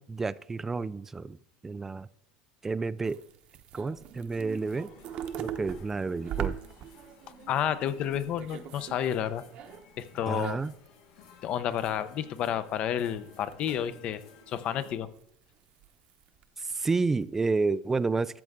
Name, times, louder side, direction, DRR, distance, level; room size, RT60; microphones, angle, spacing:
voice 1, 0.0-1.4 1.6-2.1 2.6-3.2 3.7-4.9 5.4-6.6 10.3-10.7 16.6-18.4, right 4 dB, 15° right, 0.4 m, -30 dB
sound 1, 3.0-9.1 9.3-10.9 11.2-11.3 11.7-12.2 12.4-14.1 14.5-15.2 15.6-16.4 16.7-17.2, right 10 dB, 50° right, 0.9 m, -41 dB
sound 2, 4.5-14.9, left 7 dB, 80° left, 1.9 m, -56 dB
voice 2, 7.5-9.4 10.0-10.6 11.4-14.2 14.5-15.1, left 10 dB, 50° left, 0.8 m, -30 dB
13.5 x 7.6 x 3.7 m
supercardioid pair, 120°, 2 cm